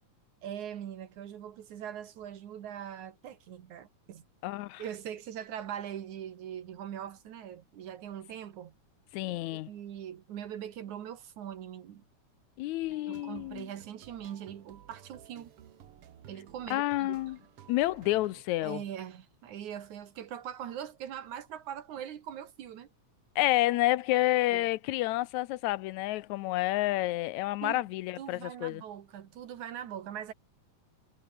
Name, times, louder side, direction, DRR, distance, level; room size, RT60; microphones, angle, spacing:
voice 1, 0.4-4.3 4.8-8.7 9.3-9.4 9.7-12.0 13.1-15.5 16.3-17.2 18.6-22.9 24.5-24.7 27.6-27.8 28.2-30.3, right 10 dB, 80° right, 3.1 m, -41 dB
voice 2, 4.4-4.8 9.1-9.7 12.6-13.7 16.7-17.4 17.7-18.8 23.4-28.8, left 17 dB, 85° left, 2.0 m, -29 dB
sound 1, 12.8-18.4, right 10 dB, 55° right, 2.1 m, -54 dB
omnidirectional pair, 3.4 m